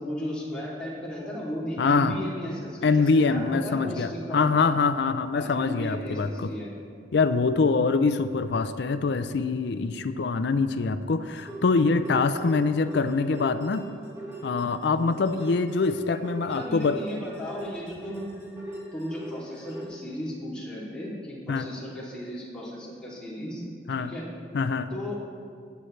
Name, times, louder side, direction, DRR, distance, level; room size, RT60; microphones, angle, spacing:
voice 1, 0.0-4.5 5.3-6.7 16.5-18.2 18.9-23.6 24.0-24.3 24.9-25.2, equal, 5° left, -9 dB, 2.7 m, -35 dB
voice 2, 1.8-2.2 2.8-6.5 7.1-13.8 14.4-17.0 21.5-21.7 23.9-24.1 24.5-24.9, left 4 dB, 65° left, 10 dB, 0.4 m, -24 dB
sound 1, 11.3-19.8, right 1 dB, 15° right, 2.0 m, -41 dB
18.5 x 8.1 x 3.2 m, 2.2 s
head